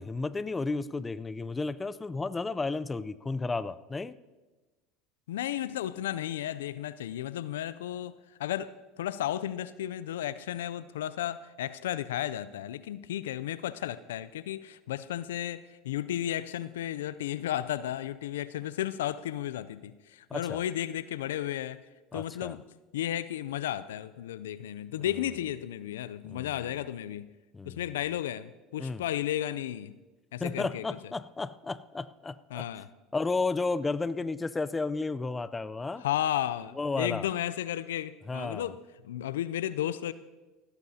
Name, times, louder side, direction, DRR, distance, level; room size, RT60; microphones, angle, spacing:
voice 1, 0.0-4.2 20.3-20.6 22.1-22.6 26.3-26.5 27.5-27.9 28.8-29.0 30.4-32.7 33.1-36.0 36.8-37.3 38.3-38.7, left 3 dB, 20° left, 16 dB, 0.5 m, -33 dB
voice 2, 5.3-21.8 22.1-22.6 22.9-27.3 27.6-29.9 30.3-30.9 32.5-32.9 36.0-38.8 39.0-40.1, left 12 dB, 85° left, 16 dB, 0.4 m, -33 dB
17.0 x 14.5 x 2.8 m, 1.2 s
hypercardioid pair, 85°, 0 cm